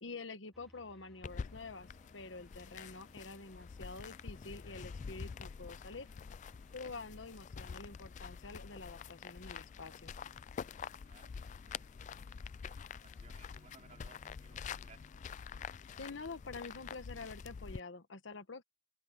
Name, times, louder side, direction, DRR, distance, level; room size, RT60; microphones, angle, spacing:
voice 1, 0.0-6.1 6.7-10.1 16.0-18.6, left 3 dB, 80° left, 1.2 m, -47 dB
sound 1, 0.5-16.9, equal, ahead, 3.7 m, -68 dB
sound 2, 1.2-17.8, left 6 dB, 40° left, 0.3 m, -47 dB
voice 2, 10.8-11.3 11.7-12.1 12.6-15.1, right 4 dB, 40° right, 3.3 m, -63 dB
open air
head